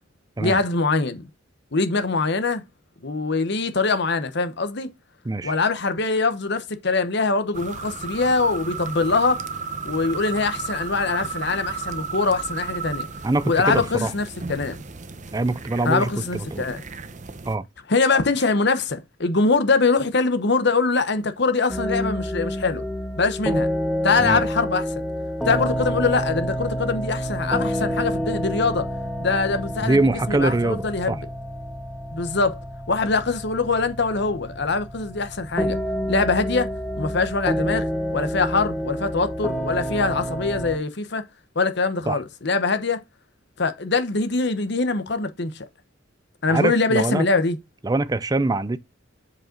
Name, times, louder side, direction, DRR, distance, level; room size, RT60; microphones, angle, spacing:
voice 1, 0.4-1.2 1.7-2.6 3.0-4.9 5.4-9.4 9.8-13.1 13.4-14.8 15.8-16.8 17.9-22.8 23.2-23.7 24.0-24.9 25.4-28.9 29.2-31.2 32.1-32.6 32.9-35.8 36.1-36.7 37.0-41.2 41.5-43.0 43.6-45.7 46.4-47.6, left 3 dB, 60° left, 1.1 m, -23 dB
sound 1, 7.5-17.5, right 5 dB, 40° right, 0.8 m, -34 dB
voice 2, 13.2-14.1 15.3-16.6 17.5-17.7 24.2-24.4 29.8-31.2 42.1-42.2 46.5-47.3 47.8-48.8, right 2 dB, 20° right, 0.5 m, -23 dB
sound 2, 21.7-40.8, equal, ahead, 0.9 m, -28 dB
7.4 x 5.2 x 3.9 m
head